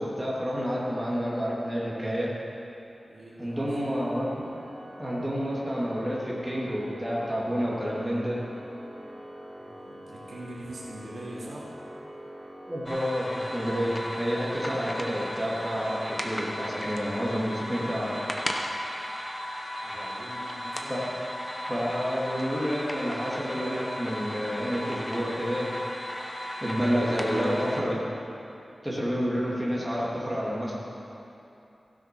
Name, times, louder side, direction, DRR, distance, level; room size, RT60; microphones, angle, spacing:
voice 1, 0.0-2.3 3.4-4.3 5.0-8.4 12.7-18.2 20.9-21.0 21.7-25.7 26.6-28.0 28.8-30.8, equal, 10° right, -6 dB, 2.4 m, -29 dB
voice 2, 3.0-3.7 9.6-11.7 19.8-21.0, right 1 dB, 80° right, -6 dB, 2.7 m, -42 dB
Organ, 3.5-14.4, equal, 35° right, 2.2 m, -45 dB
sound 1, 12.9-27.8, equal, 15° left, 1.0 m, -35 dB
16.0 x 6.4 x 6.0 m, 2.8 s
wide cardioid pair, 95°, 0 cm